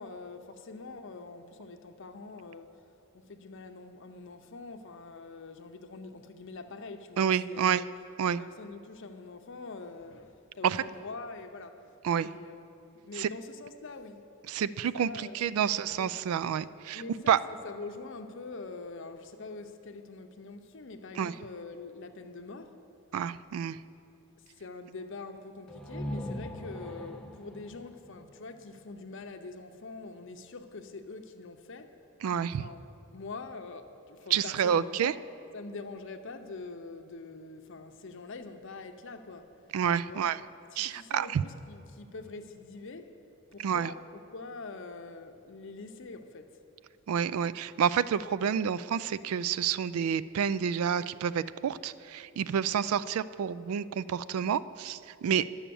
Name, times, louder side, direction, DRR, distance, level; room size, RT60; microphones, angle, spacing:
voice 1, 0.0-2.8 3.1-7.9 8.4-12.0 12.3-12.6 12.9-14.3 15.0-16.2 16.9-22.8 24.6-32.0 32.6-35.2 35.5-39.6 40.0-40.3 40.7-43.2 43.5-46.6, left 3 dB, 60° left, 0.7 m, -44 dB
voice 2, 7.2-7.8 8.2-8.4 10.6-10.8 12.0-12.3 13.2-13.3 14.5-17.0 17.3-17.4 21.2-21.3 23.1-23.8 32.2-32.6 34.3-35.1 39.7-40.4 40.8-41.4 43.6-43.9 47.1-55.5, right 8 dB, 80° right, 0.3 m, -29 dB
sound 1, 25.7-29.4, equal, 5° left, 0.5 m, -41 dB
11.0 x 7.2 x 6.9 m
head